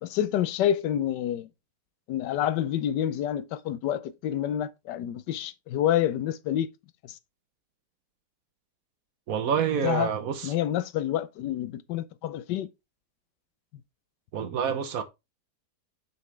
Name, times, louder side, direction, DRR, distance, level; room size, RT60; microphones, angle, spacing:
voice 1, 0.0-1.5 2.1-6.7 7.0-7.2 9.8-10.1 10.4-12.7, left 11 dB, 85° left, 1.3 m, -28 dB
voice 2, 9.3-10.5 14.3-15.0, right 7 dB, 60° right, 1.1 m, -27 dB
6.5 x 5.6 x 3.2 m
omnidirectional pair, 1.8 m